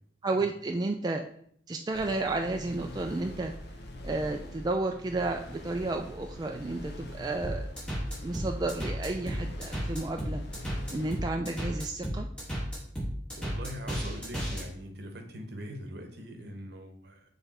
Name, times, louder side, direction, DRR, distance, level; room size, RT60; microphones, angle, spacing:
voice 1, 0.2-1.2 1.7-3.5 4.0-7.7 8.2-10.4 10.9-12.3, right 2 dB, 20° right, 3 dB, 0.3 m, -32 dB
sound 1, 1.9-11.2, left 1 dB, 60° left, 1.0 m, -44 dB
sound 2, 7.4-14.6, equal, 5° left, 2.7 m, -33 dB
voice 2, 13.4-17.2, equal, 60° right, 4 dB, 1.1 m, -41 dB
7.0 x 3.3 x 4.2 m, 0.63 s
head